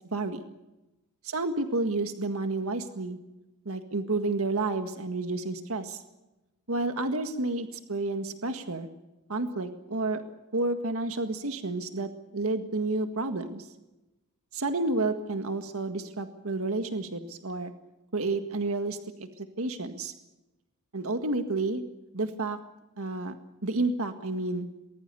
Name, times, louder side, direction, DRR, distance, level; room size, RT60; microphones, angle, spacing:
voice 1, 0.1-0.4 1.2-3.2 3.7-6.0 6.7-8.9 9.3-10.2 10.5-13.7 14.5-17.7 18.1-20.1 20.9-21.8 22.1-22.6 23.0-23.4 23.6-24.7, right 2 dB, 75° right, 7 dB, 1.8 m, -30 dB
23.0 x 20.5 x 6.9 m, 1.0 s
head